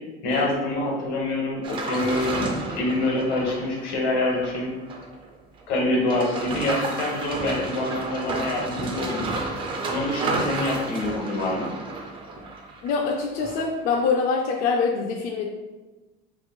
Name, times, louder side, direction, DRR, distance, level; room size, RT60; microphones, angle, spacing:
voice 1, 0.2-4.7 5.7-9.2 9.9-11.7, left 2 dB, 80° left, -1 dB, 1.3 m, -26 dB
sound 1, 1.6-5.3 5.6-5.7 6.0-13.6 13.9-14.0, right 3 dB, 25° right, 0.4 m, -31 dB
voice 2, 12.8-15.4, left 4 dB, 45° left, 0 dB, 0.4 m, -24 dB
3.1 x 2.5 x 4.2 m, 1.2 s
cardioid pair, 155°, 20 cm